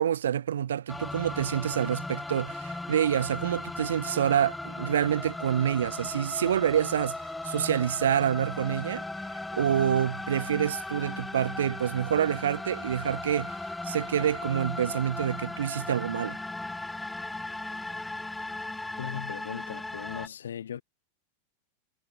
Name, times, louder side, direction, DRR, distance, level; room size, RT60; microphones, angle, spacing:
voice 1, 0.0-7.2 7.4-9.0 9.6-13.6 13.8-16.4, right 9 dB, 65° right, 0.5 m, -27 dB
sound 1, 0.9-20.3, left 2 dB, 5° left, 0.5 m, -37 dB
voice 2, 19.0-20.8, left 9 dB, 65° left, 0.5 m, -38 dB
figure-of-eight pair, 90°, 0 cm